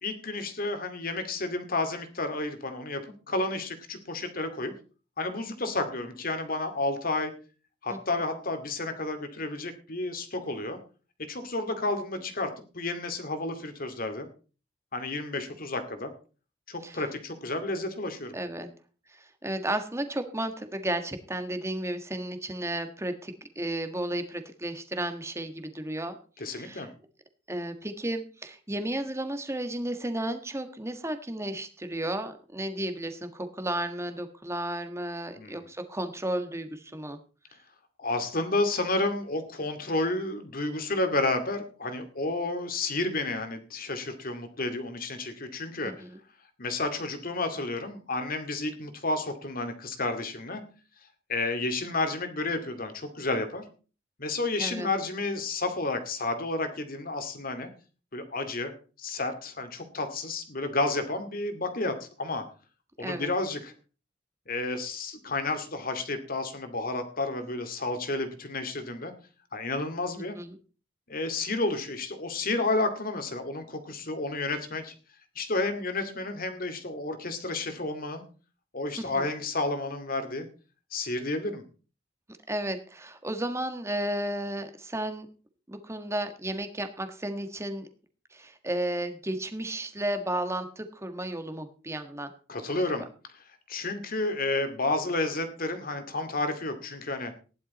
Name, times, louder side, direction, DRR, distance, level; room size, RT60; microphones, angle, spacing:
voice 1, 0.0-3.0 3.3-4.7 5.2-7.3 7.8-10.8 11.3-14.3 14.9-16.1 16.7-18.4 26.4-26.9 35.4-35.6 38.0-45.9 46.6-50.6 51.3-53.6 54.2-57.7 58.1-58.7 59.0-62.4 63.0-63.7 64.5-69.1 69.5-70.4 71.1-74.9 75.4-78.2 78.7-80.5 80.9-81.6 92.5-93.0 93.7-97.3, left 2 dB, 50° left, 7 dB, 2.3 m, -31 dB
voice 2, 7.9-8.2 16.8-17.0 18.3-18.7 19.1-26.9 27.5-37.2 45.8-46.2 54.6-54.9 63.0-63.3 70.2-70.6 79.0-79.3 82.5-85.3 85.7-87.9 88.3-92.3 92.7-92.8, right 1 dB, 15° right, 8 dB, 1.5 m, -33 dB
15.5 x 11.0 x 4.2 m, 0.37 s
head